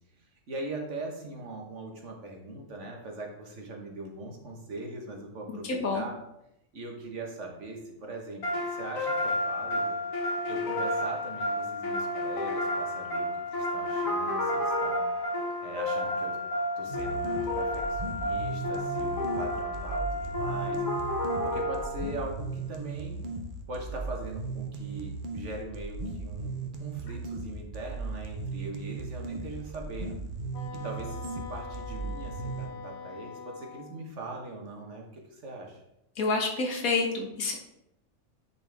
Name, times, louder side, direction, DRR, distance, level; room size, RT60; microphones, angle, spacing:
voice 1, 0.2-6.2 6.7-10.0 10.4-15.0 15.6-16.4 16.8-20.8 21.4-23.2 23.7-30.2 30.7-35.8, right 2 dB, 60° right, 1 dB, 1.6 m, -41 dB
voice 2, 5.6-6.0 36.2-37.5, left 3 dB, 90° left, 0 dB, 1.8 m, -28 dB
sound 1, 8.4-22.3, left 1 dB, 70° left, 1.8 m, -31 dB
sound 2, 16.9-32.7, right 3 dB, 45° right, 0.8 m, -37 dB
Wind instrument woodwind instrument, 30.5-34.0, left 5 dB, 50° left, 1.1 m, -43 dB
9.6 x 4.3 x 3.4 m, 0.84 s
omnidirectional pair, 1.4 m